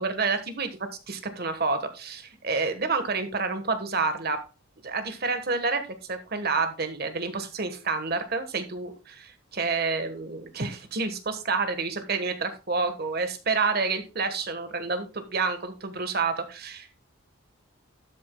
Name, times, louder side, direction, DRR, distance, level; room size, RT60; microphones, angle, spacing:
voice 1, 0.0-4.4 4.8-5.8 6.1-17.0, right 4 dB, 50° right, 8 dB, 1.4 m, -29 dB
12.5 x 8.4 x 2.3 m, 0.30 s
head